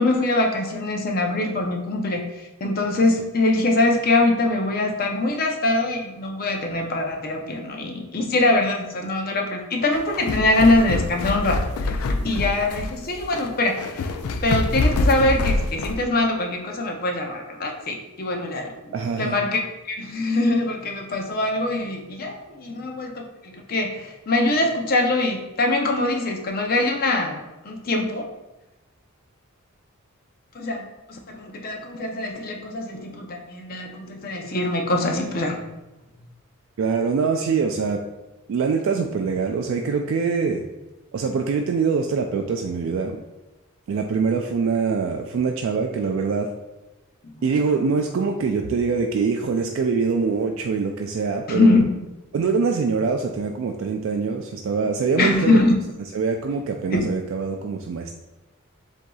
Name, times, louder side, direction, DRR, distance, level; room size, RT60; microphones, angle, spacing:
voice 1, 0.0-2.2 2.6-11.9 12.2-14.1 14.4-19.6 19.9-27.4 27.6-28.3 30.5-30.8 31.1-35.6 47.2-47.3 51.5-51.8 55.2-55.8 56.9-57.1, left 2 dB, 45° left, 2 dB, 0.6 m, -23 dB
sound 1, 10.0-16.0, left 2 dB, 85° left, 0.4 m, -25 dB
voice 2, 18.9-19.4 36.8-38.0 38.5-40.6 41.1-43.2 43.9-46.5 47.4-51.8 52.3-55.6 56.1-58.1, right 5 dB, 65° right, 3 dB, 0.3 m, -24 dB
7.5 x 2.7 x 2.3 m, 1.1 s
head